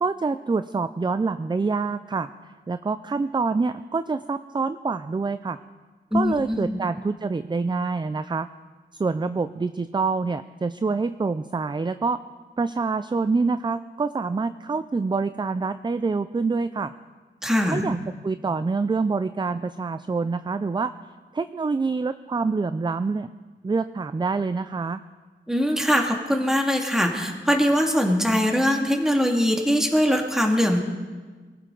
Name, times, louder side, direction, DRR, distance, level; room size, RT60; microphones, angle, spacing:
voice 1, 0.0-5.6 6.1-8.5 9.0-12.2 12.6-16.9 17.7-20.9 21.3-23.3 23.6-25.0, right 4 dB, 25° right, 12 dB, 0.4 m, -26 dB
voice 2, 6.1-6.8 17.4-17.9 25.5-30.8, equal, 5° right, 1 dB, 2.2 m, -22 dB
23.0 x 14.5 x 3.9 m, 1.4 s
wide cardioid pair, 85°, 19 cm